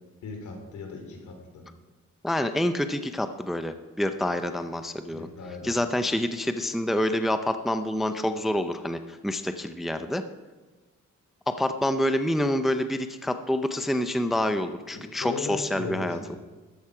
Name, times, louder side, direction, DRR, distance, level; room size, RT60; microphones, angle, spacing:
voice 1, 0.2-1.7 5.1-5.8 14.9-16.4, left 4 dB, 75° left, 3 dB, 3.7 m, -38 dB
voice 2, 2.2-5.3 5.6-10.2 11.5-16.4, left 1 dB, ahead, 8 dB, 0.5 m, -27 dB
14.0 x 12.0 x 4.9 m, 1.3 s
wide cardioid pair, 160°, 30 cm